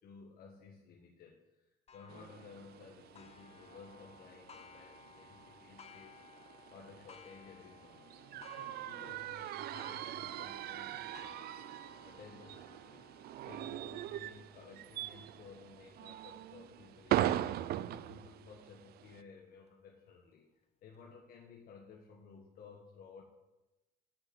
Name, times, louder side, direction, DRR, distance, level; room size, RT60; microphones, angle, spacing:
voice 1, 0.0-11.6 12.0-13.1 13.4-20.5 20.8-23.2, left 5 dB, 60° left, 0 dB, 1.7 m, -56 dB
Clock, 1.9-17.2 17.8-17.9 18.4-18.5 19.5-19.6, left 5 dB, 40° left, 0.8 m, -59 dB
sound 1, 2.1-19.2, right 13 dB, 65° right, 0.5 m, -41 dB
8.7 x 8.5 x 8.0 m, 1.0 s
cardioid pair, 110°, 17 cm